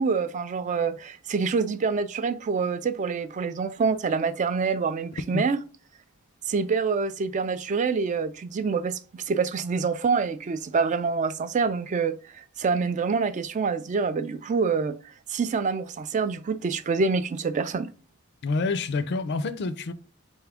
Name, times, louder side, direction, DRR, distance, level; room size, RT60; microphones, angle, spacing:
voice 1, 0.0-5.6 6.5-15.0 15.3-17.9, right 5 dB, 35° right, 0.3 m, -26 dB
voice 2, 18.4-19.9, left 3 dB, 50° left, 0.4 m, -27 dB
4.3 x 3.5 x 3.4 m
head